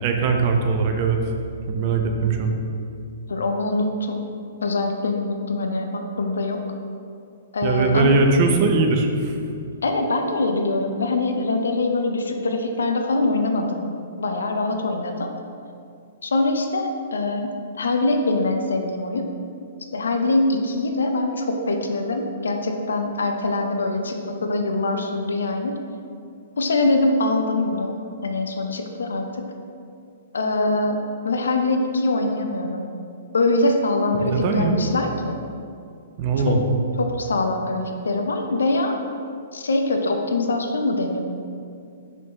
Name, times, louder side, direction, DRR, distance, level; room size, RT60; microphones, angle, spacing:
voice 1, 0.0-1.3 1.7-2.5 7.6-9.4 34.1-34.8 36.2-36.8, right 4 dB, 40° right, 3 dB, 0.7 m, -20 dB
voice 2, 3.3-4.2 4.6-6.6 7.5-8.2 9.8-13.8 14.2-15.3 16.2-19.3 19.9-25.8 26.6-29.5 30.3-32.8 33.3-35.4 36.5-36.6 37.0-39.0 39.5-41.2, left 2 dB, 70° left, 4 dB, 0.6 m, -23 dB
5.9 x 5.9 x 2.9 m, 2.4 s
figure-of-eight pair, 115°, 0 cm